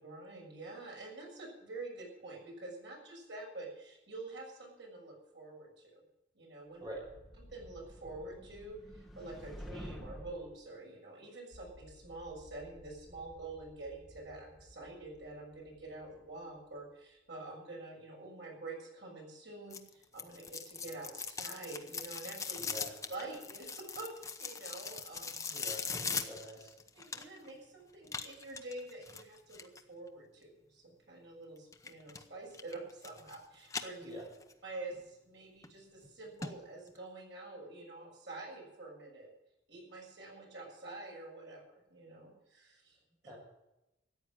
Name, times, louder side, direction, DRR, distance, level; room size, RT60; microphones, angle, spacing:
voice 1, 0.0-6.0 6.3-6.9 7.5-22.7 23.1-25.5 26.9-34.1 34.6-39.3 39.7-41.6 41.9-43.0, right 2 dB, 75° right, -1 dB, 6.6 m, -47 dB
sound 1, 6.8-10.5, equal, ahead, 1.4 m, -49 dB
sound 2, 11.5-16.9, left 1 dB, 60° left, 2.2 m, -60 dB
sound 3, 19.7-27.5 28.1-29.8 31.7-32.2 32.5-33.4 33.7-34.5 34.9-35.0 35.6-35.7 36.0-36.1 36.4-36.5 36.9-37.0, left 5 dB, 15° left, 0.8 m, -41 dB
voice 2, 22.5-23.0 25.5-26.7 34.0-34.2 43.3-43.4, equal, 25° right, -2 dB, 6.5 m, -46 dB
14.0 x 9.4 x 7.8 m, 0.92 s
head